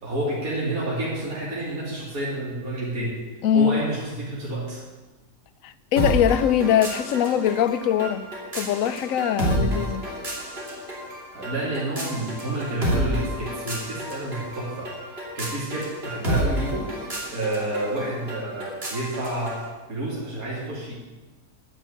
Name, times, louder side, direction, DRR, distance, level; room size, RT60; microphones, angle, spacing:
voice 1, 0.0-3.2 3.5-4.8 9.4-9.7 11.3-16.9 17.3-19.6 19.9-21.0, right 1 dB, 65° right, 3.3 m, -29 dB
voice 2, 3.4-3.8 5.6-8.2 8.5-10.0, left 9 dB, 65° left, 0.9 m, -22 dB
sound 1, 6.0-19.7, right 1 dB, 40° right, 3.4 m, -30 dB
10.0 x 9.0 x 9.0 m
omnidirectional pair, 1.6 m